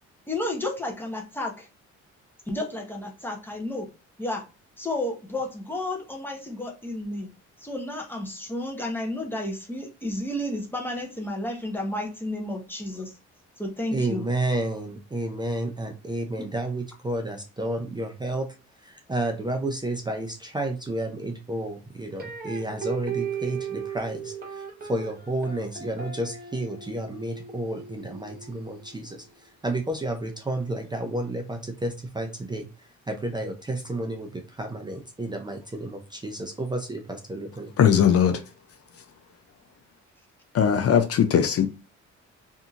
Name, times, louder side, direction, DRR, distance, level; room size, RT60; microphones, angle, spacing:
voice 1, 0.3-1.7 2.5-3.9 4.2-4.5 4.8-7.3 7.6-13.1 13.6-14.3, left 1 dB, 5° left, 0.8 m, -32 dB
voice 2, 13.9-18.5 19.1-24.3 24.9-29.2 29.6-32.7 33.1-37.7, right 1 dB, 15° right, 0.5 m, -31 dB
sound 1, 22.2-29.3, right 7 dB, 30° right, 1.0 m, -37 dB
voice 3, 37.8-38.4 40.5-41.7, left 8 dB, 50° left, 0.5 m, -19 dB
2.7 x 2.6 x 2.4 m
cardioid pair, 90°, 30 cm